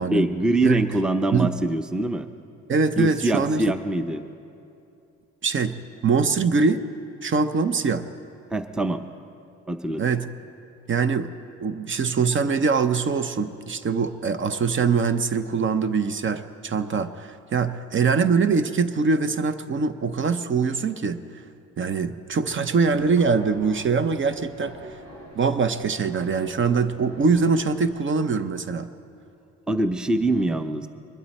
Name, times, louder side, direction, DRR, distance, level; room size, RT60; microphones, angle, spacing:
voice 1, 0.1-2.3 3.0-4.3 8.5-9.0 9.7-10.1 29.7-30.9, right 1 dB, 5° right, 9 dB, 0.6 m, -24 dB
voice 2, 2.7-3.6 5.4-5.7 6.0-6.8 7.2-8.1 10.0-10.3 10.9-11.3 11.6-21.2 21.8-24.8 25.3-28.9, right 5 dB, 40° right, 11 dB, 0.7 m, -23 dB
Subway metro underground, 22.2-27.9, right 1 dB, 65° right, 4.5 m, -44 dB
22.0 x 12.0 x 4.2 m, 2.7 s
cardioid pair, 90°, 30 cm